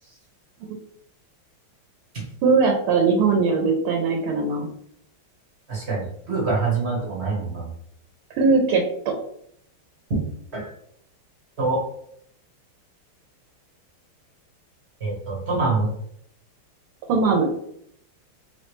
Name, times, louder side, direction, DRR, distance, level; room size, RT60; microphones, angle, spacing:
voice 1, 2.4-4.7 8.3-9.1 17.1-17.5, right 4 dB, 85° right, 1 dB, 1.6 m, -20 dB
voice 2, 5.7-7.7 10.1-10.2 10.5-10.7 11.6-11.8 15.0-15.9, right 3 dB, 35° right, -3 dB, 1.2 m, -25 dB
4.5 x 3.2 x 3.1 m, 0.70 s
omnidirectional pair, 2.3 m